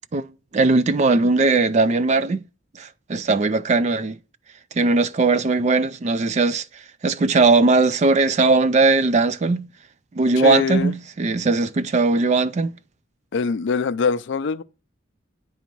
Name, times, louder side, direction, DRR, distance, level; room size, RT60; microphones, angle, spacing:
voice 1, 0.1-2.4 2.8-4.2 4.7-9.7 10.1-12.7, right 3 dB, 35° right, 0.4 m, -19 dB
voice 2, 10.4-10.9 13.3-14.6, left 5 dB, 60° left, 0.4 m, -23 dB
9.3 x 4.1 x 4.5 m
head